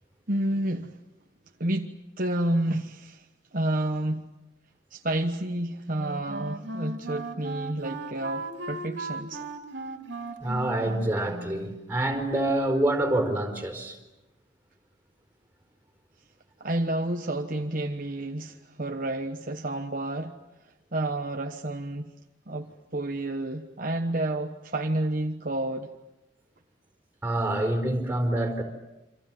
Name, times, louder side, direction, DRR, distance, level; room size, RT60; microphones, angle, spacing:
voice 1, 0.3-1.0 1.6-3.3 3.5-4.3 4.9-9.4 16.6-20.3 20.9-22.1 22.5-25.9, right 1 dB, 45° right, 1.2 m, -30 dB
Wind instrument woodwind instrument, 5.9-11.8, right 2 dB, 65° right, 2.7 m, -37 dB
voice 2, 10.4-14.0 27.2-28.6, right 1 dB, 10° right, 4.5 m, -26 dB
28.5 x 26.5 x 7.6 m
head